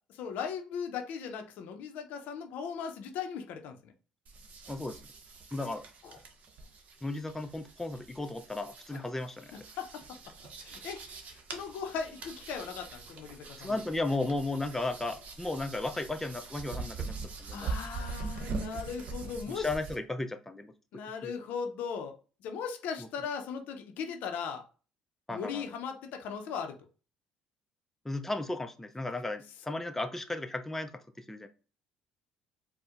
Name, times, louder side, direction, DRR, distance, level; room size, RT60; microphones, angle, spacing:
voice 1, 0.1-3.9 6.0-6.1 8.9-9.0 9.8-10.2 10.6-11.0 11.3-13.7 17.5-19.7 20.9-22.1 22.4-24.6 25.3-26.7, left 6 dB, 70° left, 6 dB, 0.5 m, -38 dB
sound 1, 4.3-20.0, right 4 dB, 55° right, 0.7 m, -43 dB
voice 2, 4.7-5.0 5.5-5.8 7.0-9.6 13.6-17.7 19.5-20.7 21.2-21.3 23.0-23.1 25.3-25.6 28.0-31.5, left 2 dB, 10° left, 7 dB, 0.4 m, -35 dB
4.2 x 2.1 x 2.4 m, 0.36 s
hypercardioid pair, 60°, 3 cm